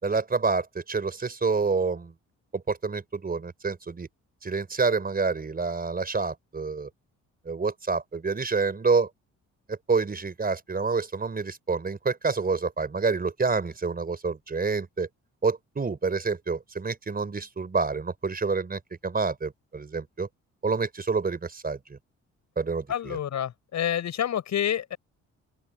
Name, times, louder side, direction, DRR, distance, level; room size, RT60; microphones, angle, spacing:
voice 1, 0.0-2.1 2.5-4.1 4.4-6.9 7.4-9.1 9.7-15.1 15.4-20.3 20.6-22.0 22.6-23.2, right 4 dB, 30° right, 5.1 m, -28 dB
voice 2, 22.9-25.0, left 10 dB, 65° left, 7.3 m, -28 dB
open air
cardioid pair, 90°, 30 cm